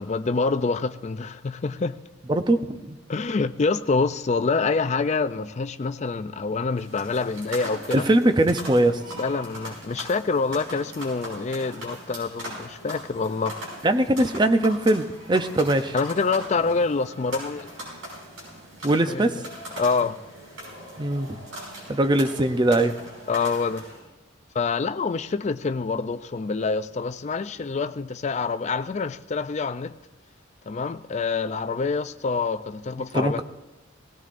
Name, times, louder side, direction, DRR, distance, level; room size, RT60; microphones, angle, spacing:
voice 1, 0.0-2.0 3.1-8.0 9.2-13.5 15.9-17.7 19.1-19.2 19.8-20.2 23.3-23.8 24.5-29.9 30.7-33.4, left 4 dB, 35° left, 0.4 m, -26 dB
voice 2, 2.3-3.0 7.9-9.0 13.8-15.9 18.8-19.4 21.0-21.3 21.9-22.9 33.1-33.4, right 1 dB, 20° right, 0.5 m, -21 dB
sound 1, 6.7-24.0, equal, 85° right, 6.0 m, -40 dB
19.0 x 17.0 x 2.5 m
head